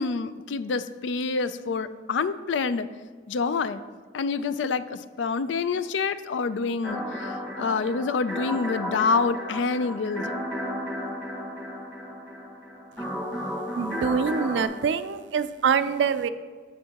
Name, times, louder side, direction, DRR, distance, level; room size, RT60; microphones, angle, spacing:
voice 1, 0.0-2.9 3.3-3.8 4.1-10.3, left 4 dB, 85° left, 14 dB, 0.4 m, -27 dB
sound 1, 6.8-14.6, equal, 5° left, 1.3 m, -33 dB
voice 2, 13.8-16.3, right 6 dB, 75° right, 13 dB, 0.4 m, -25 dB
9.9 x 6.9 x 2.9 m, 1.5 s
head